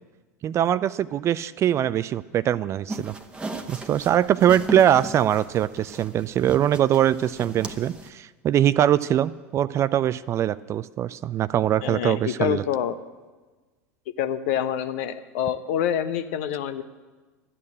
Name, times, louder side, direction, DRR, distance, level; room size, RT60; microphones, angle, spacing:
voice 1, 0.4-3.1 3.7-12.6, right 11 dB, 35° right, 17 dB, 0.4 m, -22 dB
sound 1, 2.9-8.1, right 2 dB, 10° right, 1.2 m, -37 dB
voice 2, 11.8-12.9 14.2-16.8, left 9 dB, 60° left, 11 dB, 0.9 m, -26 dB
12.5 x 8.6 x 8.5 m, 1.3 s
hypercardioid pair, 80°, 8 cm